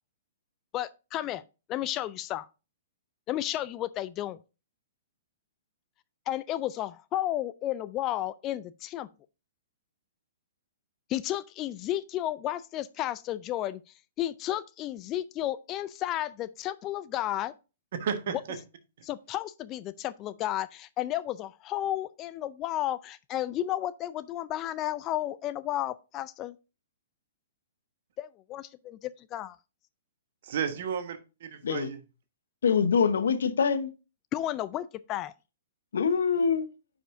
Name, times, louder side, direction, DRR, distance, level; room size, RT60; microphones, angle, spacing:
voice 1, 0.7-1.4 1.7-2.5 3.3-4.4 6.3-9.1 11.1-13.8 14.2-17.5 19.0-26.5 28.2-29.6 34.3-35.3, left 13 dB, 30° left, 0.4 m, -32 dB
voice 2, 18.0-18.6 30.4-32.0, right 7 dB, 60° right, 1.3 m, -33 dB
voice 3, 32.6-33.9 35.9-36.7, left 6 dB, 70° left, 0.8 m, -24 dB
9.8 x 5.1 x 2.6 m
hypercardioid pair, 120°, 0 cm